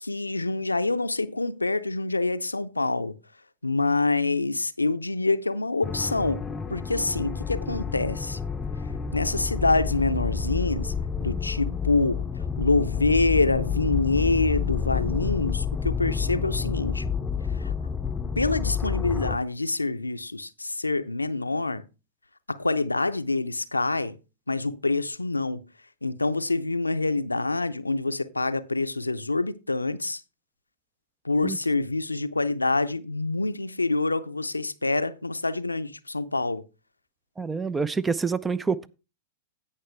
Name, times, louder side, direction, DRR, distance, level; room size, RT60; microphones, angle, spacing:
voice 1, 0.0-3.2 3.6-6.4 6.7-8.4 9.1-10.9 11.2-12.2 12.6-17.0 17.5-17.7 18.4-21.9 22.5-24.2 24.5-25.6 26.0-30.2 31.2-36.6, left 3 dB, 85° left, 0.5 m, -26 dB
sound 1, 5.8-19.4, left 6 dB, 15° left, 0.8 m, -29 dB
voice 2, 37.4-38.9, right 5 dB, 10° right, 0.5 m, -27 dB
17.0 x 5.7 x 3.3 m
figure-of-eight pair, 100°, 0 cm